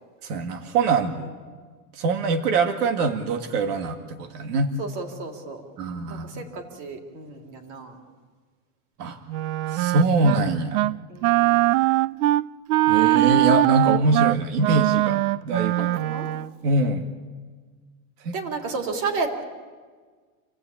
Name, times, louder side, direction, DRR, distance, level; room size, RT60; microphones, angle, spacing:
voice 1, 0.2-1.3 1.9-4.7 5.8-6.4 9.0-9.2 9.7-10.8 12.9-15.9 16.6-17.1 18.2-18.3, right 3 dB, 90° right, 5 dB, 2.3 m, -24 dB
voice 2, 4.8-5.6 6.1-8.0 11.1-11.8 15.8-16.3 18.3-19.4, right 4 dB, 40° right, 3 dB, 3.5 m, -32 dB
Wind instrument woodwind instrument, 9.3-10.4 10.7-11.0 11.2-16.5, right 16 dB, 70° right, 0.6 m, -21 dB
29.5 x 16.0 x 8.7 m, 1.5 s
supercardioid pair, 160°, 45 cm